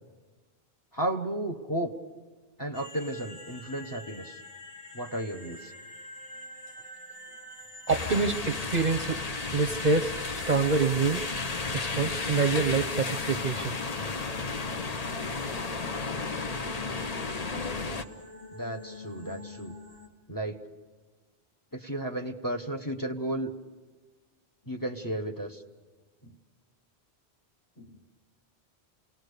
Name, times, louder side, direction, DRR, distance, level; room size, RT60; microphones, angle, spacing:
voice 1, 0.9-1.9 2.6-4.4 4.9-5.7 18.5-19.7 20.3-20.6 21.7-23.5 24.7-25.6 26.2-26.3 27.8-28.0, right 1 dB, 20° left, 3 dB, 1.1 m, -33 dB
sound 1, 2.7-20.1, left 1 dB, 60° left, 2.7 m, -47 dB
sound 2, 7.9-18.0, left 4 dB, 40° left, 0.8 m, -33 dB
voice 2, 7.9-9.2 9.5-10.2 10.5-11.2 11.7-13.8, right 4 dB, 45° right, 7 dB, 0.8 m, -26 dB
28.5 x 18.5 x 6.7 m, 1.3 s
omnidirectional pair, 1.1 m